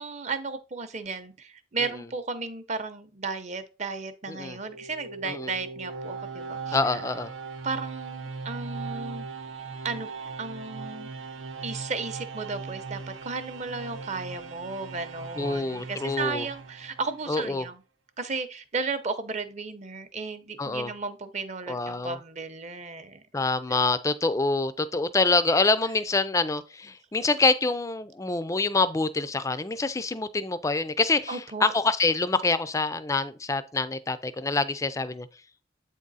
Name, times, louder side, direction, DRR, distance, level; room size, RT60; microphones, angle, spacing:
voice 1, 0.0-7.0 7.6-9.3 9.8-10.1 10.4-11.1 11.6-17.8 18.2-23.2 23.7-23.8 31.3-31.7, right 4 dB, 35° right, 0.7 m, -34 dB
sound 1, 4.4-17.4, right 4 dB, 85° right, 0.8 m, -39 dB
voice 2, 6.7-7.3 15.4-16.5 17.3-17.7 20.6-20.9 21.7-22.2 23.3-35.3, left 3 dB, 15° left, 0.4 m, -26 dB
8.1 x 3.6 x 4.0 m
head